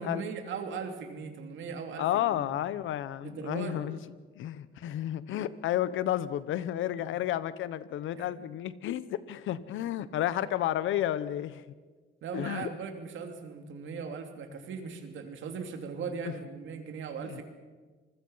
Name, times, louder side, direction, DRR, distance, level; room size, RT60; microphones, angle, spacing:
voice 1, 0.0-2.5 3.2-3.8 8.1-8.3 12.2-17.4, right 5 dB, 75° right, 5 dB, 3.0 m, -39 dB
voice 2, 2.0-4.0 4.3-11.6 12.3-12.7 16.2-16.3 17.2-17.4, left 12 dB, 80° left, 16 dB, 1.0 m, -31 dB
27.0 x 21.0 x 5.7 m, 1.4 s
cardioid pair, 90°, 20 cm